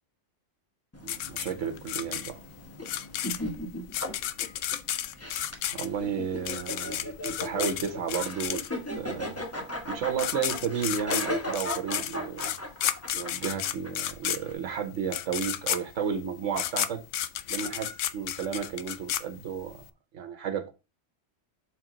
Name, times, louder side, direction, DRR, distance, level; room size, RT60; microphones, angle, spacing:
sound 1, 0.9-14.5, left 1 dB, 15° left, 1.0 m, -37 dB
voice 1, 1.0-2.4 5.7-8.7 8.9-9.4 9.9-12.5 13.1-17.0 17.5-19.8 20.1-20.7, right 7 dB, 85° right, 1.3 m, -33 dB
sound 2, 1.1-9.0 9.8-9.9 10.1-19.8, left 11 dB, 90° left, 0.9 m, -32 dB
6.5 x 4.7 x 3.8 m
omnidirectional pair, 1.2 m